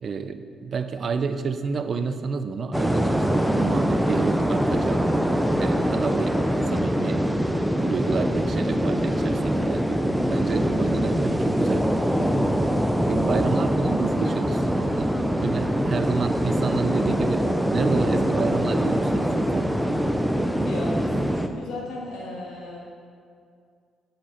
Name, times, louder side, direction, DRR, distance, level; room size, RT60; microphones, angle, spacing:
voice 1, 0.0-5.1 5.6-6.4 6.7-7.3 7.9-9.9 10.3-11.9 13.1-17.5 17.7-19.7, right 5 dB, 50° right, 10 dB, 0.5 m, -30 dB
sound 1, 2.7-21.5, equal, 5° right, 0.5 m, -23 dB
voice 2, 20.3-22.9, left 2 dB, 85° left, -3 dB, 2.2 m, -37 dB
7.7 x 6.9 x 5.7 m, 2.3 s
cardioid pair, 90°, 0 cm